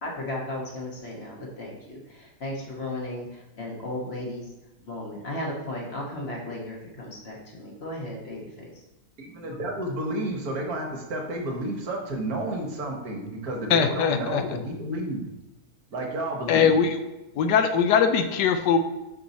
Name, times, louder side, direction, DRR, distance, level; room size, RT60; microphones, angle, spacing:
voice 1, 0.0-4.4 4.8-8.7, left 1 dB, 40° left, -2 dB, 1.3 m, -35 dB
voice 2, 9.2-15.3 15.9-16.7, right 1 dB, 65° right, 1 dB, 1.4 m, -31 dB
voice 3, 13.7-14.6 16.5-17.0 17.3-18.8, left 7 dB, 85° left, 8 dB, 1.2 m, -21 dB
5.5 x 4.6 x 4.1 m, 0.97 s
omnidirectional pair, 1.8 m